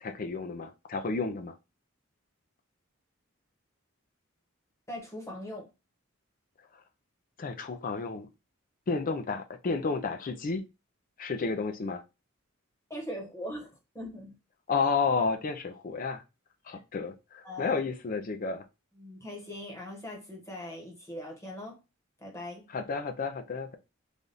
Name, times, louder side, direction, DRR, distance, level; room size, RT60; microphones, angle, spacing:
voice 1, 0.0-1.6 7.4-8.3 8.9-10.6 11.2-12.0 14.7-16.2 16.7-18.6 22.7-23.8, left 4 dB, 45° left, 0.5 m, -31 dB
voice 2, 4.9-5.7 12.9-13.7 13.9-14.3 16.7-16.8 17.4-17.8 18.9-21.8 22.2-22.7, left 1 dB, 15° left, 1.1 m, -40 dB
3.4 x 2.4 x 4.0 m
head